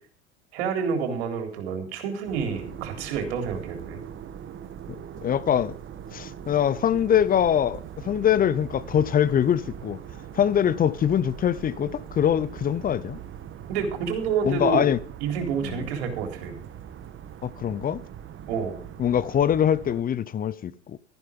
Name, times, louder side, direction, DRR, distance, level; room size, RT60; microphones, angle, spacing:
voice 1, 0.5-4.0 13.7-14.9 15.2-16.5 18.5-18.8, right 6 dB, 70° right, 3.8 m, -28 dB
sound 1, 2.2-20.0, right 9 dB, 35° right, 1.4 m, -41 dB
voice 2, 5.2-5.7 6.1-10.0 10.3-13.2 14.4-15.0 15.6-15.8 17.4-18.0 19.0-21.0, left 9 dB, 25° left, 0.6 m, -23 dB
13.5 x 11.5 x 5.3 m
hypercardioid pair, 85°, 35 cm